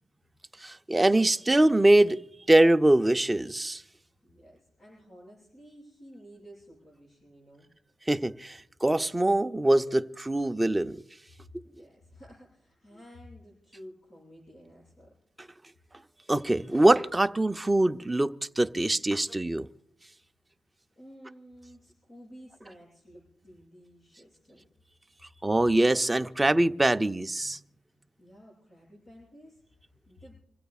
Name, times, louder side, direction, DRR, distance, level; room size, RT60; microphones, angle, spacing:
voice 1, 0.6-2.2 2.5-3.8 8.1-11.0 16.3-19.7 25.4-27.6, right 1 dB, 10° right, 0.6 m, -23 dB
voice 2, 4.2-7.7 11.6-15.1 21.0-24.6 28.2-30.3, equal, 35° left, 7.9 m, -52 dB
27.0 x 16.0 x 2.4 m
wide cardioid pair, 125°, 0 cm